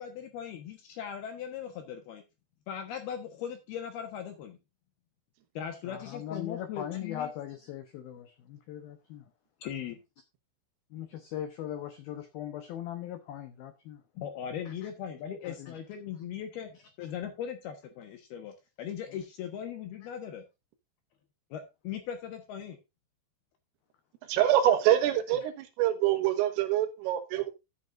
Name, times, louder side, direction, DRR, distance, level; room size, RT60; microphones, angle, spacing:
voice 1, 0.0-2.2 2.7-4.6 5.5-7.3 9.6-10.0 14.2-20.4 21.5-22.8, left 8 dB, 70° left, 2.6 m, -39 dB
voice 2, 5.8-9.2 10.9-14.0 14.7-14.8 15.4-15.7, left 10 dB, 85° left, 2.1 m, -39 dB
voice 3, 24.3-27.5, right 12 dB, 85° right, 3.9 m, -25 dB
14.0 x 7.7 x 2.6 m
omnidirectional pair, 5.8 m